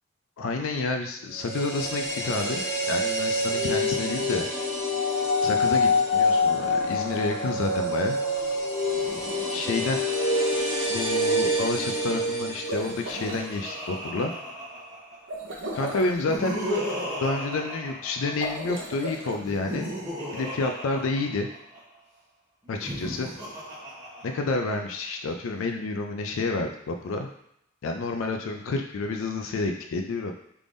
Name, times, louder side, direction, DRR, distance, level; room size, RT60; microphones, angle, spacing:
voice 1, 0.4-4.5 5.4-8.2 9.5-10.0 10.9-14.3 15.7-16.6 17.2-19.9 20.3-21.5 22.7-23.3 24.2-27.3 27.8-30.3, left 3 dB, 70° left, 4 dB, 0.4 m, -29 dB
sound 1, 1.3-13.5 13.7-13.8, left 1 dB, ahead, 1.4 m, -26 dB
Laughter, 8.9-11.7 12.8-15.3 16.0-18.7 19.4-21.8 22.7-24.8, equal, 20° right, 0.9 m, -36 dB
sound 2, 12.5-13.4 15.3-16.2 18.3-19.4, right 1 dB, 60° right, 0.7 m, -35 dB
3.4 x 3.4 x 2.6 m, 0.76 s
head